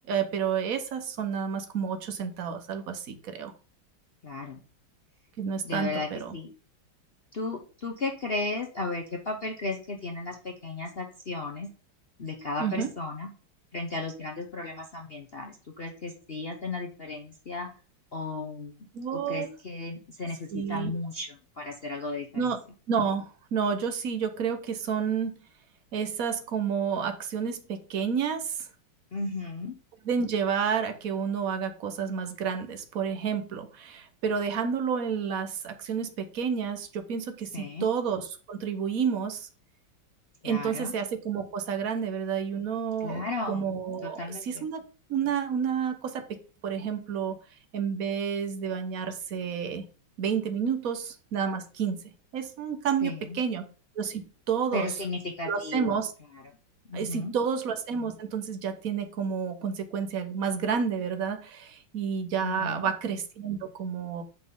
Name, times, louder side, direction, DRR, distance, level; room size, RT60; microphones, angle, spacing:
voice 1, 0.1-3.5 5.4-6.3 12.6-12.9 18.9-19.5 20.5-20.9 22.3-22.6 22.9-25.4 25.9-28.6 30.0-39.5 40.4-44.8 45.1-46.2 46.6-47.4 47.7-49.8 50.2-52.0 52.3-53.7 53.9-54.9 55.4-56.1 56.9-64.2, right 7 dB, 50° right, 7 dB, 1.3 m, -30 dB
voice 2, 4.2-4.6 5.6-6.5 7.3-11.7 12.2-13.3 13.7-17.7 18.1-22.6 29.1-29.7 37.5-37.9 40.4-40.9 43.0-43.7 44.0-44.6 53.0-53.4 54.7-55.9 56.9-57.3 62.4-62.9, left 3 dB, 50° left, 3 dB, 0.7 m, -35 dB
8.4 x 5.9 x 3.8 m, 0.36 s
omnidirectional pair, 2.3 m